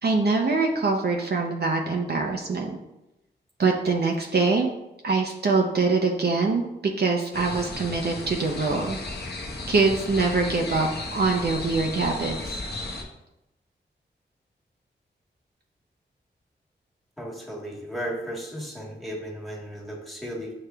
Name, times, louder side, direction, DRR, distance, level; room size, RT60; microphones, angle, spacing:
voice 1, 0.0-2.8 3.6-4.7 5.0-6.6 7.0-9.0 9.7-12.6, right 3 dB, 55° right, 1 dB, 0.6 m, -24 dB
sound 1, 7.3-13.0, left 2 dB, 60° left, 0.7 m, -34 dB
voice 2, 17.2-20.5, equal, ahead, -1 dB, 1.3 m, -35 dB
6.7 x 3.1 x 2.3 m, 0.92 s
cardioid pair, 45°, 19 cm